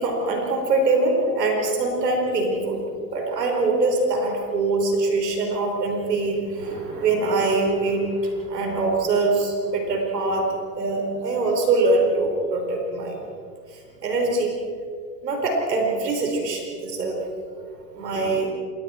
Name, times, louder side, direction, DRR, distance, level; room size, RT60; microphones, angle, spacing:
voice 1, 0.0-10.5 10.8-13.2 13.7-14.6 15.2-17.2 17.9-18.5, right 3 dB, 85° right, 1 dB, 4.5 m, -23 dB
28.0 x 21.0 x 4.4 m, 2.2 s
hypercardioid pair, 80°, 47 cm